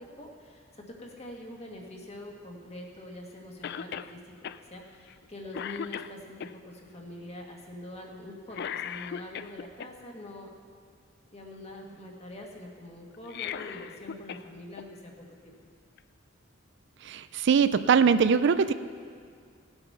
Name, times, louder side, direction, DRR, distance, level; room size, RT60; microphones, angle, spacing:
voice 1, 0.0-10.5 11.3-15.1 15.4-15.6, left 1 dB, 30° left, 0 dB, 1.7 m, -44 dB
Cough, 3.6-4.1 4.4-4.6 5.1-5.3 5.5-6.5 8.5-9.9 13.1-14.5 14.8-14.9 16.0-16.1, left 8 dB, 55° left, 0.3 m, -37 dB
voice 2, 17.0-18.7, right 6 dB, 60° right, 12 dB, 0.4 m, -22 dB
17.0 x 7.9 x 5.7 m, 2.2 s
head